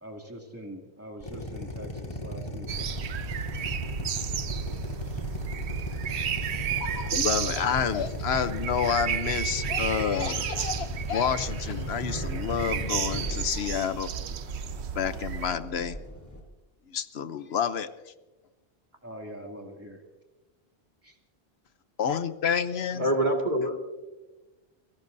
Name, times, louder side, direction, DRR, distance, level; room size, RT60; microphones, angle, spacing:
voice 1, 0.0-2.9 19.0-20.0 21.0-21.2 22.9-23.3, equal, 15° right, 1 dB, 2.5 m, -43 dB
Drill, 1.2-13.2, left 1 dB, 30° left, 3.8 m, -36 dB
sound 1, 2.7-15.5, right 8 dB, 80° right, 1.0 m, -33 dB
voice 2, 6.8-14.1 14.9-16.0 16.9-17.9 22.0-23.1, left 7 dB, 70° left, 12 dB, 1.1 m, -29 dB
sound 2, 10.7-16.4, equal, 15° left, 3.5 m, -41 dB
voice 3, 23.0-23.8, right 1 dB, 45° right, 1 dB, 2.3 m, -25 dB
29.0 x 17.5 x 2.7 m, 1.1 s
omnidirectional pair, 1.1 m